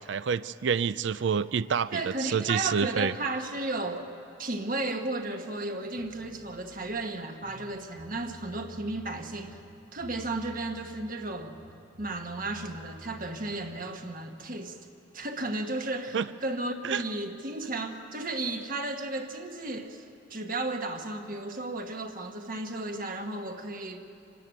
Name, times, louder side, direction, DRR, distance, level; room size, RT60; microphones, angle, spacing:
voice 1, 0.1-3.1 16.1-16.3 16.8-17.0, right 6 dB, 65° right, 0.4 m, -28 dB
voice 2, 1.9-4.1 4.4-9.6 9.9-11.6 12.0-14.8 15.1-20.0 20.3-24.0, right 2 dB, 45° right, 1.4 m, -34 dB
sound 1, 6.0-7.0 7.4-9.1 9.5-11.2 11.4-13.8, left 1 dB, 80° right, 2.7 m, -51 dB
27.0 x 12.5 x 8.7 m
head